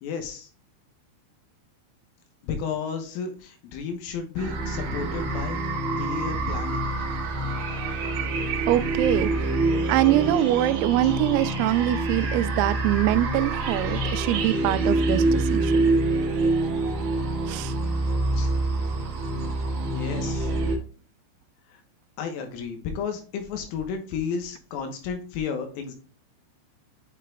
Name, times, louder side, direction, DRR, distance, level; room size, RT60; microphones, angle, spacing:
voice 1, 0.0-0.5 2.4-5.6 6.0-6.9 11.0-11.1 18.3-18.5 19.9-20.5 21.7-21.8 22.2-26.0, left 6 dB, 85° left, 3.7 m, -32 dB
sound 1, 4.4-20.8, right 2 dB, 55° right, 2.7 m, -26 dB
voice 2, 8.7-15.9 17.5-17.8, right 15 dB, 90° right, 3.3 m, -24 dB
9.3 x 5.7 x 2.3 m
omnidirectional pair, 5.9 m